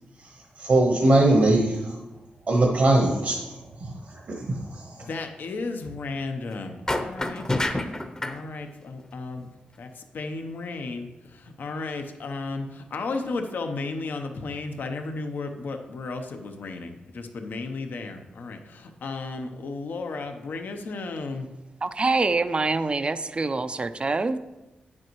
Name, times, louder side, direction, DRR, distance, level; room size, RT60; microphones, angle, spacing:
voice 1, 0.2-2.0 2.5-3.5 3.8-5.1, right 2 dB, 60° right, 0 dB, 1.2 m, -22 dB
voice 2, 4.9-7.6 8.2-9.5 9.8-21.5, left 3 dB, 75° left, 5 dB, 0.8 m, -34 dB
sound 1, 6.9-8.4, left 1 dB, 20° left, 0.8 m, -27 dB
voice 3, 21.8-24.4, right 3 dB, 35° right, 12 dB, 0.5 m, -25 dB
9.3 x 7.5 x 3.1 m, 1.0 s
cardioid pair, 70°, 3 cm